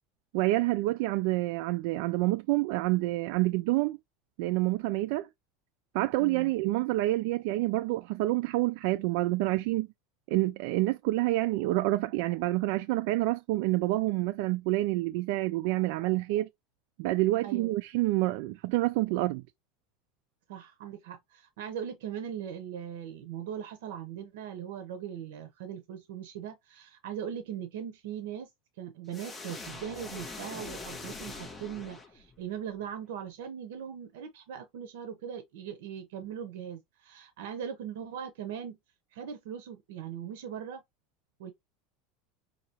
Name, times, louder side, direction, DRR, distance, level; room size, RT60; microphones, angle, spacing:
voice 1, 0.3-4.0 4.4-5.3 5.9-9.9 10.3-16.5 17.0-19.4, right 18 dB, 55° right, 0.3 m, -28 dB
voice 2, 6.2-6.5 17.4-17.7 20.5-28.5 28.8-38.8 39.1-40.8 41.4-41.5, right 8 dB, 70° right, 0.8 m, -40 dB
sound 1, 29.1-32.5, left 3 dB, 10° left, 1.4 m, -43 dB
5.8 x 2.8 x 2.8 m
supercardioid pair, 180°, 0 cm